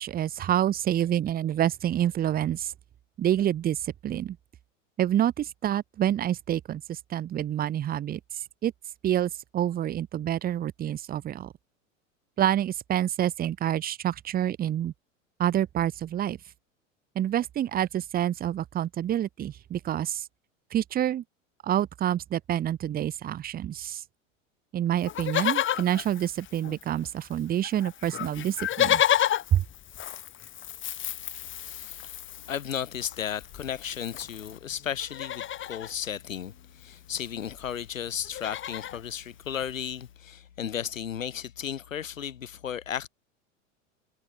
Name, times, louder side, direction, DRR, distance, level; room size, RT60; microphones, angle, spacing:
voice 1, 0.0-2.7 3.2-3.8 4.0-4.4 5.0-8.2 8.6-8.7 9.0-11.5 12.4-14.9 15.4-16.4 17.2-20.2 20.7-21.2 21.6-24.0 24.7-29.0 29.5-29.6, right 11 dB, 25° right, 0.8 m, -27 dB
Livestock farm animals working animals, 25.0-27.0 27.3-27.4 27.6-34.6 35.0-35.9 37.1-37.2 37.4-37.7 38.0-39.0 39.6-39.7, left 11 dB, 30° left, 1.6 m, -31 dB
voice 2, 31.6-32.2 32.5-43.1, left 9 dB, 80° left, 3.5 m, -34 dB
figure-of-eight pair, 85°, 39 cm